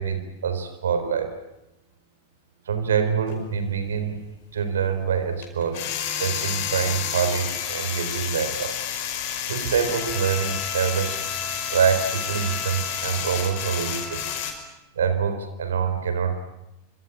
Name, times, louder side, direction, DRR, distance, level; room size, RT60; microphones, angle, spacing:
voice 1, 0.0-1.4 2.7-4.2 4.5-5.9 6.2-8.7 9.5-11.2 11.7-14.3 15.0-16.4, right 7 dB, 65° right, 10 dB, 4.3 m, -25 dB
sound 1, 3.3-3.4 5.4-14.5, left 9 dB, 45° left, 5.5 m, -30 dB
Bowed string instrument, 9.9-14.8, left 1 dB, 15° left, 3.4 m, -38 dB
26.5 x 25.5 x 8.6 m, 0.91 s
figure-of-eight pair, 90°, 0 cm